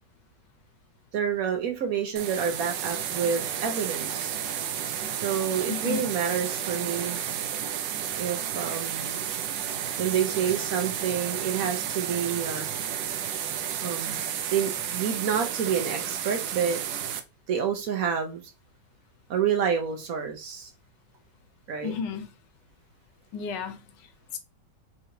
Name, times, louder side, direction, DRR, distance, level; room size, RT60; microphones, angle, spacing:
voice 1, 1.1-4.4 5.2-7.2 8.2-9.3 10.0-12.7 13.8-14.2 14.5-16.8 17.5-18.4 19.3-20.7 21.7-21.9, right 7 dB, 60° right, 1.2 m, -28 dB
sound 1, 2.2-17.2, right 9 dB, 85° right, 1.2 m, -32 dB
voice 2, 5.7-6.1 21.8-22.3 23.3-23.9 24.3-24.4, left 6 dB, 85° left, 1.4 m, -32 dB
3.8 x 3.2 x 2.7 m
omnidirectional pair, 1.9 m